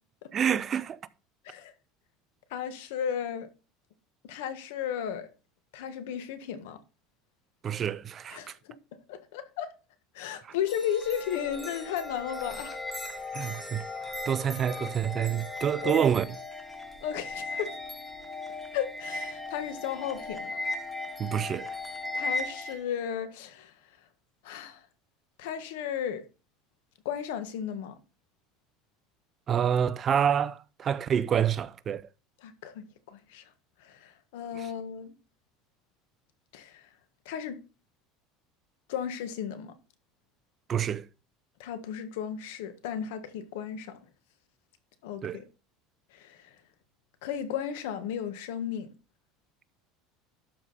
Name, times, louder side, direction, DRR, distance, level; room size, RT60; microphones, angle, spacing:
voice 1, 0.3-1.0 7.6-8.4 13.3-13.8 14.3-16.3 21.2-21.7 29.5-32.0 34.6-34.7 40.7-41.0 45.2-45.4, right 8 dB, 30° right, 0.5 m, -27 dB
voice 2, 2.5-3.5 4.2-5.3 5.7-6.8 8.3-8.8 9.1-9.7 10.1-12.8 13.4-13.5 15.8-16.0 17.0-17.8 18.7-20.6 22.1-23.7 24.4-24.8 25.4-26.2 27.0-28.0 32.4-33.4 33.8-35.1 36.5-36.8 37.2-37.6 38.9-39.7 41.6-44.0 45.0-45.4 46.1-46.5 47.2-48.9, left 9 dB, 85° left, 1.4 m, -34 dB
sound 1, 10.7-22.8, left 2 dB, 5° left, 1.4 m, -37 dB
12.0 x 4.9 x 4.1 m
cardioid pair, 145°, 0 cm